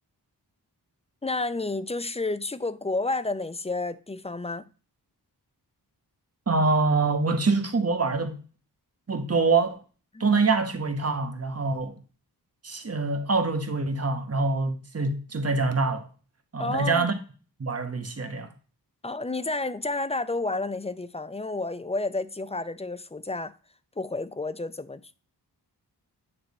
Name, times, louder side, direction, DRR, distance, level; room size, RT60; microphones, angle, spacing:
voice 1, 1.2-4.7 10.1-10.4 16.6-17.1 19.0-23.5 24.0-25.0, left 2 dB, 15° left, 0.4 m, -30 dB
voice 2, 6.5-8.4 9.1-9.8 10.2-11.9 12.6-16.0 16.5-17.1 17.6-18.5, right 3 dB, 35° right, 1.1 m, -25 dB
8.7 x 3.4 x 4.0 m
wide cardioid pair, 70°, 40 cm